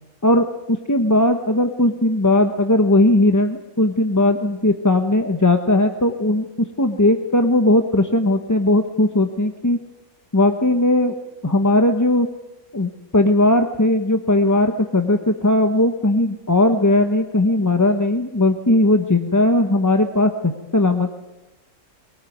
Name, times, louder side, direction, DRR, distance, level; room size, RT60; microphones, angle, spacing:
voice 1, 0.2-6.4 6.8-9.8 10.3-11.1 11.4-12.3 12.7-21.2, left 1 dB, 15° left, 5 dB, 1.0 m, -18 dB
23.0 x 18.0 x 9.4 m, 1.0 s
omnidirectional pair, 1.6 m